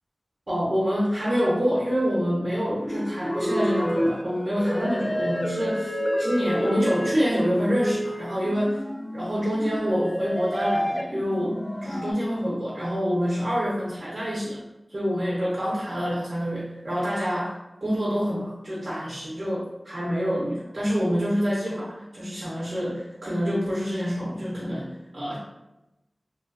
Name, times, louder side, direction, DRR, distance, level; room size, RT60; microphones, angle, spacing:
voice 1, 0.5-8.8 9.1-14.6 14.9-17.5 17.8-25.4, equal, 60° right, -7 dB, 0.8 m, -26 dB
sound 1, 2.7-12.1, equal, 25° left, 0.4 m, -29 dB
3.0 x 2.2 x 2.5 m, 0.95 s
wide cardioid pair, 50°, 0 cm